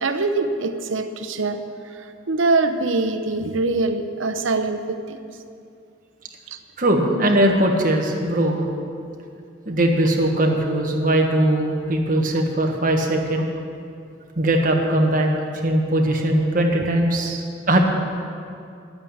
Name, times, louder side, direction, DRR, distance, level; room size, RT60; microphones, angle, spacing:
voice 1, 0.0-1.6 2.3-5.2 6.5-6.6, right 3 dB, 80° right, 8 dB, 0.8 m, -23 dB
voice 2, 6.8-8.7 9.7-13.5 14.4-15.3 15.6-17.8, right 1 dB, 40° right, 1 dB, 1.4 m, -20 dB
10.5 x 8.9 x 8.6 m, 2.5 s
head